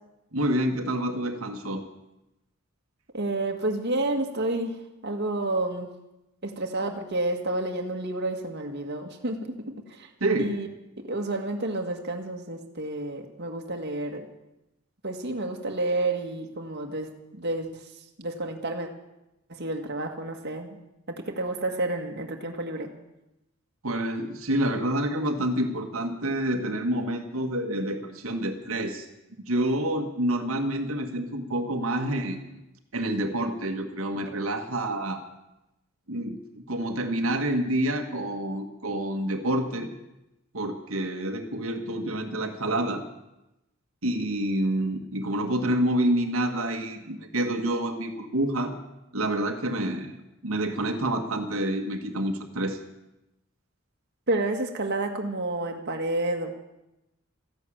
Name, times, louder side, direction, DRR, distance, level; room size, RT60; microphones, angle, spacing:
voice 1, 0.3-1.8 10.2-10.5 23.8-29.1 29.4-32.6 32.9-35.2 36.1-36.4 36.7-39.9 40.5-43.0 44.0-48.7 49.1-52.8, right 1 dB, 80° right, 4 dB, 1.7 m, -28 dB
voice 2, 3.1-5.9 6.4-10.1 10.4-10.7 11.0-14.3 15.0-17.9 18.2-18.9 19.5-20.8 21.1-22.9 54.3-56.5, right 2 dB, 55° right, 3 dB, 1.9 m, -30 dB
15.0 x 11.0 x 8.7 m, 0.93 s
head